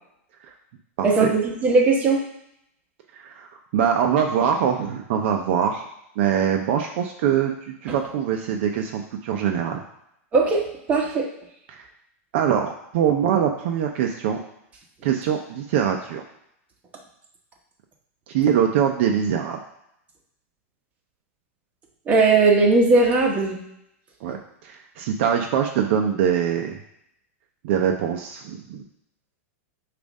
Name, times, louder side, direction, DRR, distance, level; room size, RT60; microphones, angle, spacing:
voice 1, 1.0-2.2 10.3-11.3 22.1-23.6, right 3 dB, 20° right, -1 dB, 1.0 m, -18 dB
voice 2, 3.1-3.5 3.7-5.8 6.2-9.8 11.7-11.8 12.3-14.4 15.0-16.2 18.3-19.6 24.2-26.8 27.6-28.8, right 8 dB, 50° right, 3 dB, 0.6 m, -23 dB
7.0 x 2.5 x 5.2 m, 0.77 s
supercardioid pair, 155°, 8 cm